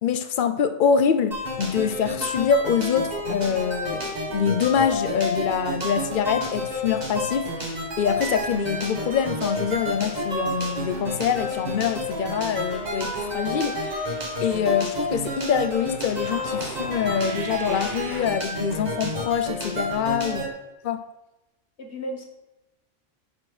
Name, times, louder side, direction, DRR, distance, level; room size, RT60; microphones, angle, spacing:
voice 1, 0.0-20.4 20.8-21.0, left 7 dB, 55° left, 0.8 m, -25 dB
sound 1, 1.3-20.5, left 1 dB, 40° right, 1.8 m, -30 dB
sound 2, 7.9-18.3, right 4 dB, 70° right, 1.2 m, -44 dB
voice 2, 21.8-22.3, equal, 80° left, 1.6 m, -35 dB
10.5 x 4.4 x 4.9 m
omnidirectional pair, 1.1 m